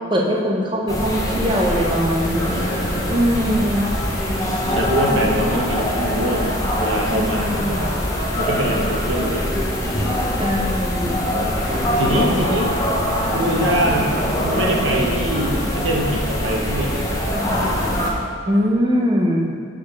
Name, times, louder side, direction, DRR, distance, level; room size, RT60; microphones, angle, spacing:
voice 1, 0.0-2.4 3.1-3.9 7.1-7.9 10.4-11.2 18.4-19.5, equal, 25° right, -1 dB, 0.8 m, -21 dB
sound 1, 0.9-18.1, equal, 15° left, 0.9 m, -22 dB
voice 2, 2.5-3.1 4.7-7.9 8.4-10.0 12.0-12.7 13.3-14.2 14.4-17.3, right 1 dB, 70° right, -1 dB, 1.1 m, -24 dB
6.9 x 5.0 x 5.2 m, 2.1 s
head